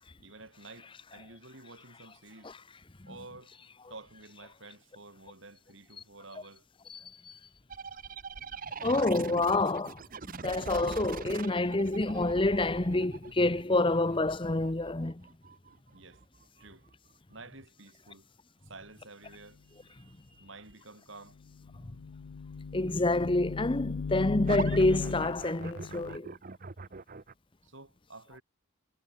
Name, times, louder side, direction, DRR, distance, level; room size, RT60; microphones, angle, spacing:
voice 1, 0.2-2.5 3.1-3.5 3.9-6.6 15.9-16.2 16.6-16.9 17.3-18.3 18.6-21.4 27.6-28.4, right 3 dB, 60° right, 5.7 m, -51 dB
voice 2, 6.9-7.4 8.8-10.0 10.4-15.2 22.7-26.3, left 2 dB, 25° left, 0.8 m, -28 dB
sound 1, 7.7-17.1 24.5-27.3, right 5 dB, 40° right, 0.8 m, -43 dB
sound 2, 21.4-26.2, left 5 dB, 80° left, 0.5 m, -37 dB
head